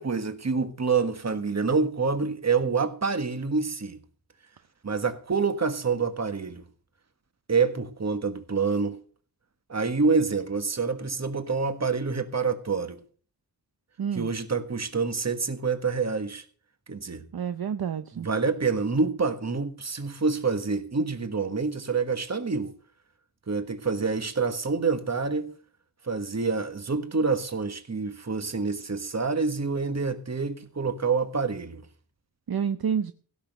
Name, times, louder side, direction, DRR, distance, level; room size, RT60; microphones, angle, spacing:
voice 1, 0.0-4.0 4.8-6.6 7.5-9.0 9.7-13.0 14.1-16.4 16.9-17.2 18.2-22.7 23.5-25.5 26.0-31.9, right 4 dB, 40° right, 1.5 m, -27 dB
voice 2, 14.0-14.3 17.3-18.3 32.5-33.1, right 7 dB, 60° right, 0.7 m, -29 dB
16.0 x 6.3 x 6.6 m
wide cardioid pair, 110°, 40 cm